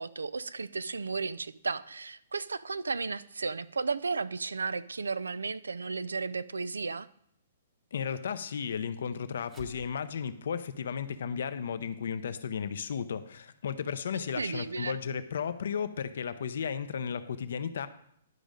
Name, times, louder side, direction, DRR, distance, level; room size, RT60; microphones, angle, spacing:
voice 1, 0.0-7.1 14.1-15.0, right 4 dB, 90° right, 17 dB, 0.4 m, -34 dB
voice 2, 7.9-17.9, left 7 dB, 70° left, 12 dB, 0.7 m, -34 dB
sound 1, 9.4-14.1, right 3 dB, 20° right, 1.1 m, -58 dB
11.0 x 5.1 x 5.1 m, 0.70 s
hypercardioid pair, 130°, 0 cm